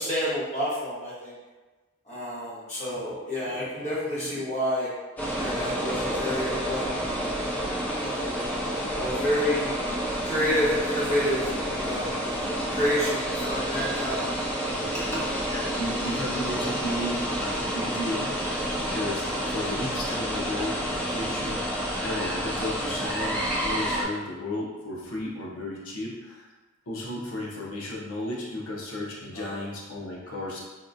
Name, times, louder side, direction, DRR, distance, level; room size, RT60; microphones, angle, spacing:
voice 1, 0.0-1.3 2.1-4.9 5.4-7.5 8.0-8.2 8.9-9.7 10.2-11.4 11.7-14.3 15.1-15.2 29.3-29.5, equal, 35° left, -9 dB, 1.1 m, -29 dB
sound 1, 5.2-24.0, equal, 10° left, 0.3 m, -29 dB
voice 2, 15.2-26.5 26.9-30.6, left 1 dB, 85° left, -4 dB, 0.7 m, -34 dB
3.6 x 2.3 x 2.6 m, 1.2 s
head